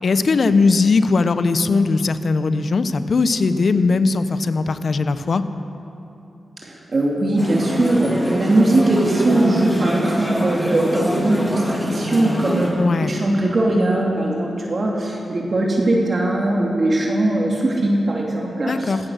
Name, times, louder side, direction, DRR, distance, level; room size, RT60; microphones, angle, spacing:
voice 1, 0.0-5.4 12.8-13.1 18.7-19.0, left 4 dB, 65° left, 12 dB, 0.8 m, -19 dB
voice 2, 6.6-18.9, right 1 dB, 50° right, -2 dB, 2.7 m, -20 dB
sound 1, 7.4-12.7, equal, 10° left, 3.5 m, -24 dB
15.0 x 14.5 x 6.4 m, 2.8 s
cardioid pair, 45°, 0 cm